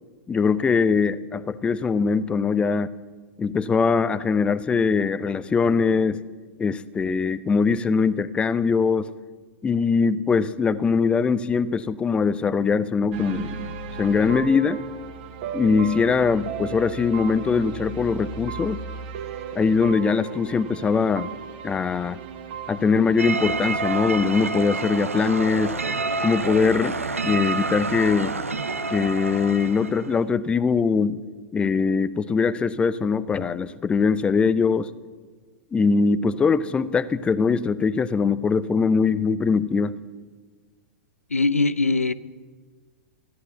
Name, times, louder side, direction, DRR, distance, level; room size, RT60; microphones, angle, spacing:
voice 1, 0.3-2.9 3.4-6.2 6.6-9.1 9.6-14.8 15.5-18.8 19.5-21.3 21.6-22.2 22.7-25.7 26.2-27.0 27.2-28.3 28.9-31.2 31.5-34.9 35.7-39.9, left 5 dB, 15° left, 0.5 m, -22 dB
sound 1, 13.1-26.8, right 6 dB, 45° right, 1.3 m, -36 dB
sound 2, 23.2-30.2, right 4 dB, 80° right, 0.8 m, -28 dB
voice 2, 41.3-42.1, left 3 dB, 85° left, 0.5 m, -21 dB
14.5 x 11.0 x 8.1 m
figure-of-eight pair, 100°, 7 cm